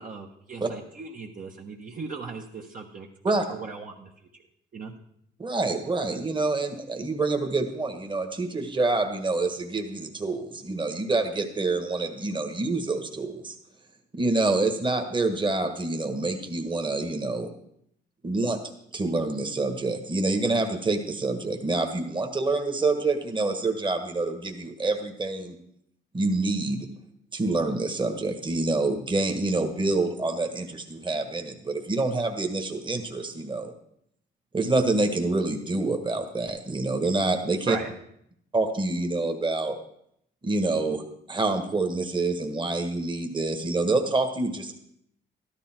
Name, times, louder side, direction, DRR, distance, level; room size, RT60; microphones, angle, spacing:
voice 1, 0.0-4.4 4.7-4.9 37.7-37.9, right 4 dB, 45° right, 0 dB, 1.3 m, -38 dB
voice 2, 5.4-13.5 14.1-17.5 18.2-18.6 18.9-25.5 26.1-26.9 27.3-33.7 34.5-37.8 38.5-39.8 40.4-41.0 41.3-44.7, right 2 dB, 25° right, 5 dB, 1.6 m, -27 dB
13.0 x 12.0 x 4.5 m, 0.72 s
cardioid pair, 90°, 20 cm